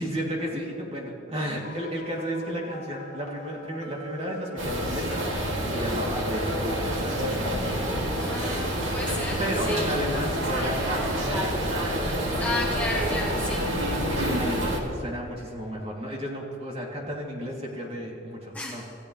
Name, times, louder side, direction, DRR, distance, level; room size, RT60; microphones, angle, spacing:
voice 1, 0.0-5.1 5.6-7.5 9.4-11.6 13.7-18.8, equal, 30° right, -3 dB, 2.9 m, -33 dB
sound 1, 1.6-14.7, equal, 40° left, 1.9 m, -43 dB
sound 2, 4.6-14.8, right 1 dB, 90° right, 2.6 m, -28 dB
voice 2, 8.2-9.8 12.4-13.7 18.5-18.8, left 2 dB, 10° left, -2 dB, 1.2 m, -33 dB
27.0 x 15.0 x 3.3 m, 2.4 s
head